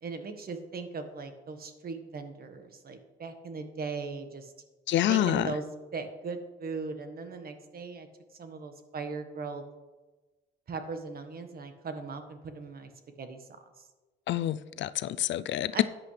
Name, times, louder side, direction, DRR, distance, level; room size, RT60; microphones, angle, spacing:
voice 1, 0.0-4.5 5.0-8.1 8.4-9.6 10.7-12.9 13.2-13.5 13.8-13.9 15.7-15.8, right 4 dB, 50° right, 7 dB, 1.5 m, -38 dB
voice 2, 4.9-5.4 14.3-15.7, left 13 dB, 70° left, 15 dB, 0.4 m, -27 dB
13.5 x 9.2 x 3.3 m, 1.2 s
cardioid pair, 90°, 20 cm